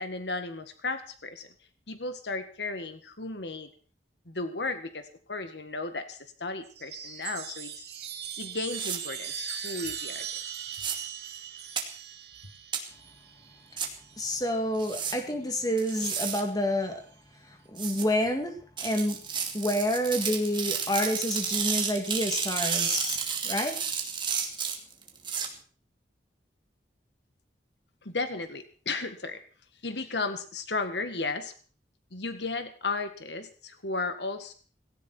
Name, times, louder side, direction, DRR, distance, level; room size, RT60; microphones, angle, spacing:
voice 1, 0.0-1.5 1.9-3.7 4.3-7.7 8.4-10.3 28.0-29.4 29.8-31.5 32.1-34.5, left 3 dB, 75° left, 9 dB, 1.8 m, -34 dB
Chime, 6.7-14.5 15.7-16.3, right 9 dB, 70° right, 2.6 m, -40 dB
sound 1, 8.7-9.0 10.7-10.9 11.8-11.9 12.7-12.8 13.8-13.9 14.8-15.1 15.8-16.4 17.8-18.0 18.8-25.5, right 6 dB, 30° right, 2.6 m, -31 dB
voice 2, 14.2-17.0 17.5-19.2 19.5-23.2 23.4-23.8, left 1 dB, 20° left, 4 dB, 2.7 m, -28 dB
18.0 x 17.5 x 4.5 m, 0.41 s
head